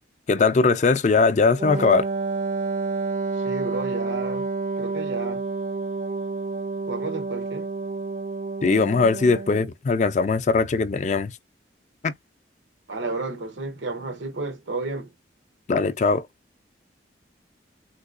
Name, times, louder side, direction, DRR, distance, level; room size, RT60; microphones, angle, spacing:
voice 1, 0.3-2.1 8.6-11.3 12.0-12.1 15.7-16.3, left 4 dB, 40° left, 0.4 m, -20 dB
Wind instrument woodwind instrument, 1.6-9.7, right 3 dB, 40° right, 0.5 m, -29 dB
voice 2, 3.4-4.5 4.8-5.4 6.9-7.7 12.9-15.1, right 3 dB, 85° right, 0.8 m, -31 dB
3.8 x 2.2 x 2.4 m
head